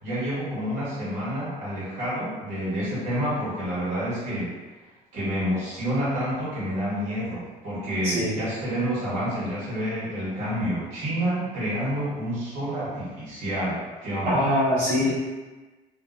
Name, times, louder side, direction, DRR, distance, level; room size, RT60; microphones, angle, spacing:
voice 1, 0.0-4.5 5.1-14.5, equal, 45° right, -9 dB, 1.2 m, -28 dB
voice 2, 8.0-8.4 14.2-15.1, left 1 dB, 75° right, -11 dB, 0.8 m, -23 dB
2.4 x 2.2 x 2.4 m, 1.2 s
cardioid pair, 155°, 16 cm